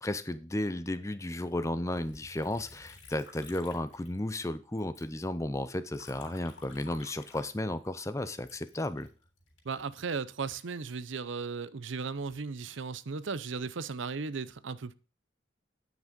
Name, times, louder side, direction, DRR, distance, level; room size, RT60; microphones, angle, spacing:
voice 1, 0.0-9.1, left 1 dB, 15° left, 0.6 m, -34 dB
Liquid, 1.9-4.5 4.8-8.0 8.4-11.4 12.0-12.5, left 3 dB, 80° left, 3.6 m, -54 dB
voice 2, 9.6-14.9, right 5 dB, 80° right, 0.6 m, -36 dB
9.9 x 6.2 x 5.2 m
head